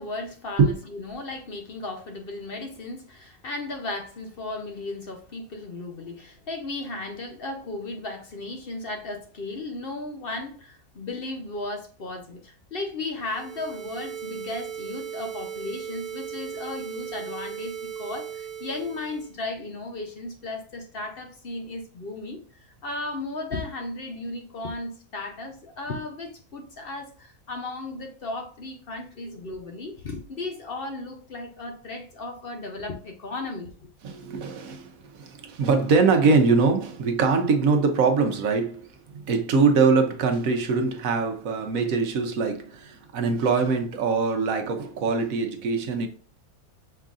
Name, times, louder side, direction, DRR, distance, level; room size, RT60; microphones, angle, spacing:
voice 1, 0.0-33.7, left 2 dB, 50° left, 0.8 m, -35 dB
sound 1, 13.2-19.3, right 8 dB, 40° right, 0.9 m, -37 dB
voice 2, 34.0-46.1, right 4 dB, 70° right, 1.1 m, -23 dB
5.6 x 3.7 x 2.4 m
omnidirectional pair, 1.6 m